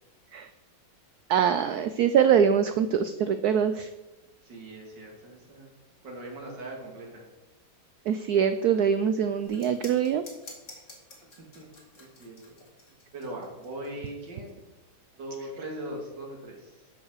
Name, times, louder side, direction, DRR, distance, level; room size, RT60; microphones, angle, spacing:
voice 1, 1.3-3.9 8.1-10.2, right 8 dB, 80° right, 11 dB, 0.8 m, -23 dB
voice 2, 4.4-5.7 6.0-7.2 11.5-11.7 12.0-12.6 12.9-14.5 15.2-16.9, right 1 dB, 60° right, -1 dB, 3.0 m, -40 dB
sound 1, 9.4-14.5, left 2 dB, 35° left, 2.6 m, -49 dB
11.5 x 5.5 x 6.5 m, 1.0 s
omnidirectional pair, 2.2 m